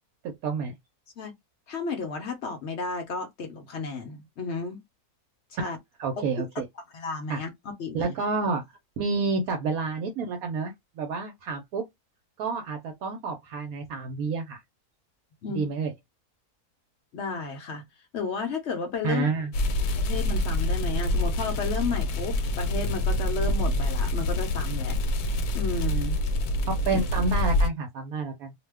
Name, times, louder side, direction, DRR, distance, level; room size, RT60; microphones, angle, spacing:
voice 1, 0.2-0.7 5.6-5.7 6.0-6.7 7.3-7.5 7.9-8.6 9.0-11.8 12.4-14.6 15.5-15.9 19.0-19.5 26.7-28.5, right 4 dB, 70° right, 1.0 m, -29 dB
voice 2, 1.7-4.8 5.6-5.8 6.4-6.5 6.9-7.5 7.8-8.1 15.4-15.7 17.1-17.8 18.1-19.3 20.0-24.9 25.5-26.2, left 4 dB, 60° left, 0.7 m, -32 dB
sound 1, 19.5-27.7, left 1 dB, 80° left, 1.1 m, -26 dB
2.6 x 2.1 x 3.4 m
omnidirectional pair, 1.6 m